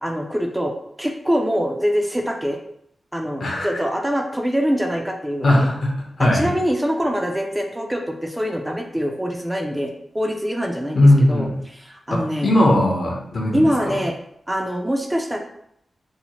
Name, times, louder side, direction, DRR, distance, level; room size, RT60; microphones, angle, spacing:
voice 1, 0.0-2.6 3.1-5.7 6.2-12.5 13.5-14.2 14.5-15.4, equal, 10° right, 3 dB, 0.3 m, -24 dB
voice 2, 3.4-3.8 5.4-6.5 10.9-11.6 12.1-14.0, left 1 dB, 65° left, -1 dB, 0.6 m, -18 dB
2.8 x 2.0 x 2.9 m, 0.72 s
wide cardioid pair, 85°, 0 cm